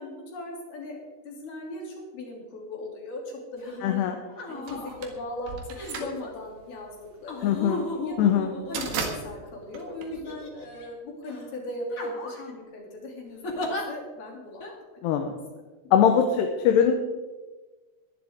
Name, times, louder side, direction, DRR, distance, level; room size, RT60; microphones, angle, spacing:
voice 1, 0.0-3.2 3.5-4.1 4.5-5.6 5.9-7.0 7.2-7.5 8.0-8.4 8.7-14.6, left 1 dB, 65° left, -1 dB, 4.9 m, -38 dB
sound 1, 3.6-3.8 4.3-5.0 5.7-6.3 7.3-9.3 10.1-10.8 11.3-11.5 11.9-12.5 13.4-13.8 14.6-14.7, left 2 dB, 35° left, 1.4 m, -36 dB
voice 2, 3.8-4.2 7.4-7.8 8.2-8.5 15.0-15.3 15.9-16.9, left 8 dB, 85° left, 4 dB, 3.1 m, -21 dB
sound 2, 4.7-10.8, right 5 dB, 75° right, 3.6 m, -37 dB
21.0 x 11.0 x 3.7 m, 1.3 s
omnidirectional pair, 4.7 m